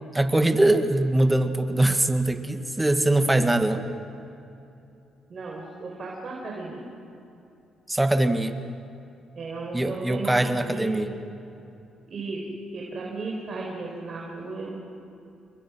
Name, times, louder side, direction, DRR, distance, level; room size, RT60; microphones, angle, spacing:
voice 1, 0.1-3.9 7.9-8.5 9.7-11.1, right 1 dB, 10° right, 7 dB, 1.7 m, -22 dB
voice 2, 5.3-6.9 9.3-10.4 10.7-10.9 12.1-14.7, right 3 dB, 45° right, -2 dB, 4.6 m, -35 dB
29.0 x 22.5 x 6.2 m, 2.8 s
cardioid pair, 90°, 0 cm